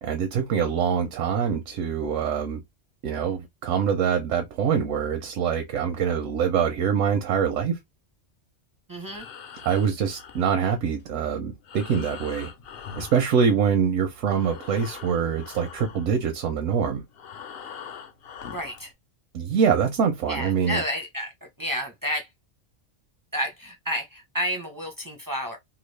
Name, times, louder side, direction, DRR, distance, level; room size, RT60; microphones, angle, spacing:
voice 1, 0.0-2.6 3.0-7.8 9.6-12.5 13.0-17.0 19.3-20.8, right 7 dB, 85° right, 0.9 m, -24 dB
voice 2, 8.9-9.2 18.5-18.9 20.3-21.3 21.6-22.3 23.3-25.6, equal, 30° right, 0.4 m, -30 dB
Breathing, 9.0-14.0 14.2-18.9, left 7 dB, 60° left, 0.7 m, -43 dB
2.9 x 2.3 x 3.2 m
omnidirectional pair, 1.2 m